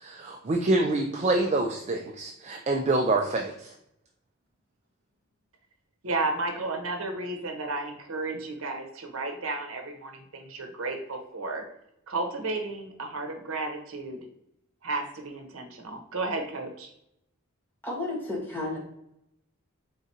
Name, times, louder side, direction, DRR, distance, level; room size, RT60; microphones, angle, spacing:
voice 1, 0.0-3.5, right 2 dB, 30° right, 2 dB, 0.4 m, -26 dB
voice 2, 6.0-11.7 12.1-14.2 14.8-16.9, right 2 dB, 75° right, 4 dB, 0.8 m, -33 dB
voice 3, 17.8-18.8, left 2 dB, 10° left, -4 dB, 1.4 m, -32 dB
4.6 x 3.7 x 2.7 m, 0.80 s
head